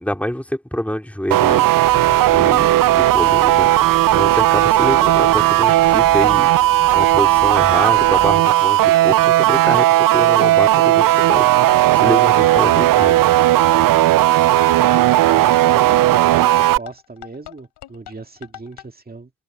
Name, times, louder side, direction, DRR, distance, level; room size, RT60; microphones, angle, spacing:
voice 1, 0.0-1.6 1.9-2.0 2.3-2.7 3.0-3.7 4.1-6.5 6.9-13.3, equal, 5° left, 3.5 m, -25 dB
sound 1, 1.3-16.8, right 15 dB, 55° right, 0.5 m, -15 dB
sound 2, 1.5-18.8, left 14 dB, 85° left, 4.0 m, -40 dB
sound 3, 1.8-8.4, left 4 dB, 20° left, 1.4 m, -38 dB
voice 2, 14.8-19.3, right 3 dB, 20° right, 2.2 m, -37 dB
cardioid pair, 80°, 40 cm